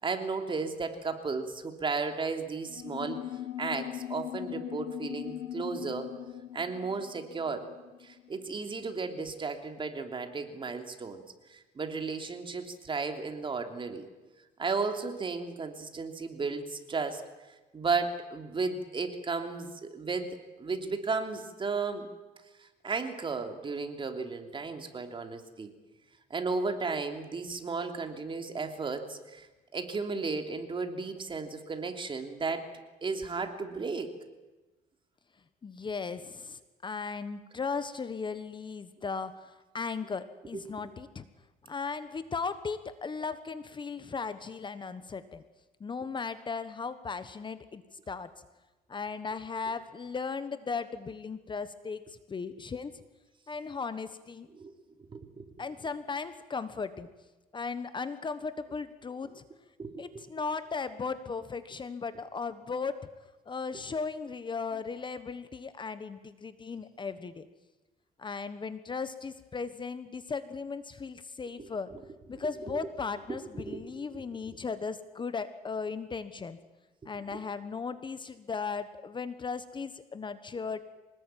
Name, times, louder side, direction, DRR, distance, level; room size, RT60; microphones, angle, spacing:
voice 1, 0.0-3.2 3.6-6.1 6.5-7.7 8.0-11.2 11.5-14.1 14.6-17.2 17.7-22.1 22.8-25.7 26.3-29.5 29.7-34.1 40.5-40.9 54.6-54.7 55.1-55.5 59.8-60.0 71.6-71.7 72.7-72.9 73.3-73.8 77.3-77.4, right 4 dB, 30° right, 6 dB, 3.0 m, -34 dB
sound 1, 2.6-8.6, left 12 dB, 65° left, 6.5 m, -40 dB
voice 2, 35.6-41.3 41.7-45.4 45.8-48.3 48.9-53.0 53.5-54.5 55.6-57.1 57.5-59.4 60.0-63.0 63.5-67.5 68.2-71.9 72.3-76.6 77.0-80.8, left 5 dB, 30° left, 12 dB, 1.3 m, -37 dB
25.0 x 20.0 x 9.2 m, 1.1 s
cardioid pair, 110°, 17 cm